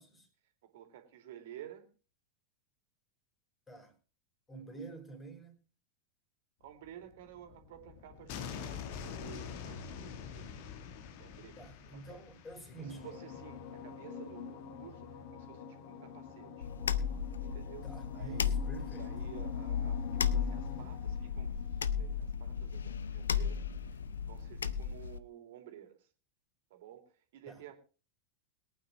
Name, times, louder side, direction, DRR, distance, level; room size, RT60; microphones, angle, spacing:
voice 1, 0.4-1.9 4.5-4.9 6.6-10.8 11.2-12.2 12.7-16.7 17.4-18.5 18.9-26.1 26.7-27.7, right 11 dB, 55° right, 2.6 m, -53 dB
voice 2, 4.5-5.5 11.6-13.1 17.8-19.1 27.5-27.6, right 3 dB, 15° left, 3.8 m, -48 dB
sound 1, 6.8-25.1, left 7 dB, 50° left, 1.3 m, -46 dB
sound 2, 16.6-25.2, left 7 dB, 70° left, 0.6 m, -35 dB
22.0 x 9.0 x 3.1 m
figure-of-eight pair, 90°, 0 cm